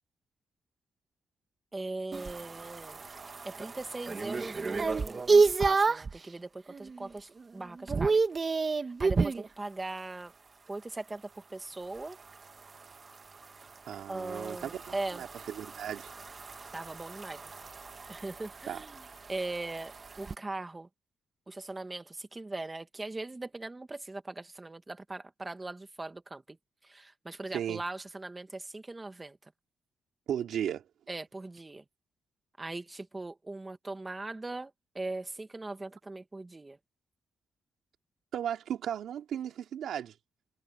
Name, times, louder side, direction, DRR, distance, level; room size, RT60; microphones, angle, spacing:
voice 1, 1.7-3.0 3.4-8.2 8.8-10.3 10.7-12.2 14.1-15.2 16.7-17.4 18.1-19.0 19.3-20.9 21.5-26.6 26.8-29.4 31.1-31.8 32.6-36.8, right 2 dB, 20° right, 1.7 m, -40 dB
sound 1, 2.1-6.2 6.7-7.1 7.4-9.5 12.0-20.4, right 4 dB, 35° right, 1.5 m, -31 dB
voice 2, 13.9-16.1 18.7-18.8 27.5-27.8 30.3-30.8 38.3-40.1, right 9 dB, 85° right, 2.7 m, -35 dB
cardioid pair, 115°, 0 cm